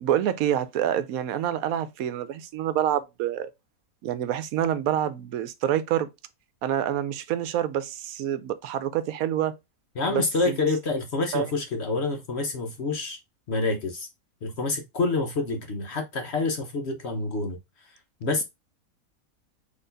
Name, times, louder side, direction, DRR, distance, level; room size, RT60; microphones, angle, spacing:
voice 1, 0.0-3.5 4.0-6.1 6.6-9.6 10.1-10.6 11.3-11.5, right 10 dB, 75° right, 1.0 m, -27 dB
voice 2, 10.0-13.2 13.5-14.1 14.4-17.6 18.2-18.4, left 3 dB, 55° left, 1.0 m, -27 dB
4.3 x 2.9 x 3.9 m
omnidirectional pair, 1.5 m